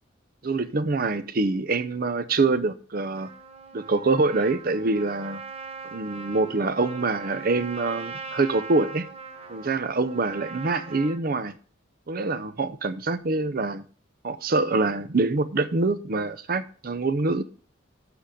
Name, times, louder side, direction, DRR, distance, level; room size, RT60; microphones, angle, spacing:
voice 1, 0.4-3.3 3.7-5.4 5.9-9.1 9.5-11.5 12.1-13.8 14.2-17.4, right 3 dB, 45° right, 0.6 m, -25 dB
Trumpet, 3.2-11.2, right 4 dB, 30° right, 0.9 m, -40 dB
8.0 x 6.2 x 5.0 m
head